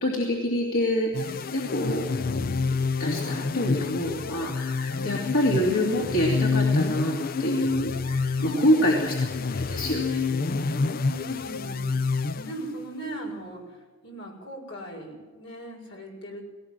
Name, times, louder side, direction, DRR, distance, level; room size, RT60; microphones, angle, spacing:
voice 1, 0.0-2.1 2.3-2.5 3.0-7.1 7.4-9.1 9.5-10.7, equal, 85° left, -2 dB, 2.9 m, -26 dB
sound 1, 1.1-12.9, left 4 dB, 45° left, 0.5 m, -28 dB
voice 2, 8.3-8.9 10.8-16.5, right 1 dB, 65° left, 0 dB, 6.4 m, -38 dB
19.0 x 18.0 x 7.6 m, 1.3 s
head